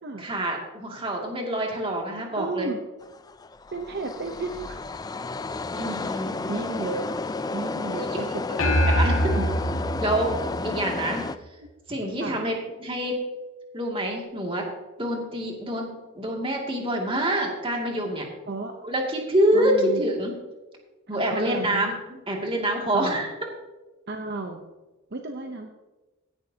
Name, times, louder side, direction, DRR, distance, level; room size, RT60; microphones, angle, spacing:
voice 1, 0.2-2.7 5.7-6.4 8.0-8.2 8.9-9.3 10.0-10.4 10.6-11.2 11.9-13.2 13.7-14.6 15.0-18.3 18.8-20.3 21.1-23.3, right 1 dB, 25° right, 0 dB, 2.4 m, -26 dB
voice 2, 2.4-2.8 3.7-4.9 5.9-6.0 6.5-7.1 7.5-9.5 12.2-12.4 18.5-18.7 19.5-20.0 21.1-21.8 22.8-23.3 24.1-24.6 25.1-25.7, right 3 dB, 50° right, 4 dB, 0.9 m, -33 dB
sound 1, 3.0-11.4, left 3 dB, 20° left, 0.4 m, -32 dB
sound 2, 8.6-11.2, equal, 85° left, 2.2 m, -24 dB
16.5 x 11.0 x 2.9 m, 1.1 s
head